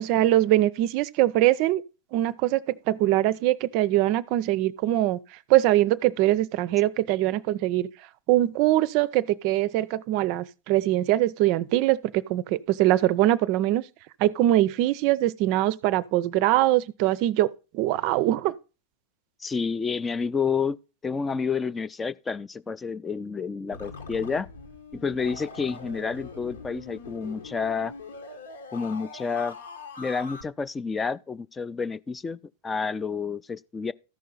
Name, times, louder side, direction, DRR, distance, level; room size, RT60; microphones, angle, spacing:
voice 1, 0.0-1.8 2.1-5.2 5.5-7.9 8.3-13.8 14.2-17.5 17.7-18.5, right 15 dB, 50° right, 0.4 m, -22 dB
voice 2, 19.4-20.8 21.0-24.5 24.9-27.9 28.7-29.6 30.0-33.9, left 5 dB, 15° left, 0.4 m, -29 dB
sound 1, 23.7-30.4, left 4 dB, 75° left, 1.3 m, -42 dB
13.5 x 5.5 x 3.9 m
hypercardioid pair, 95°, 0 cm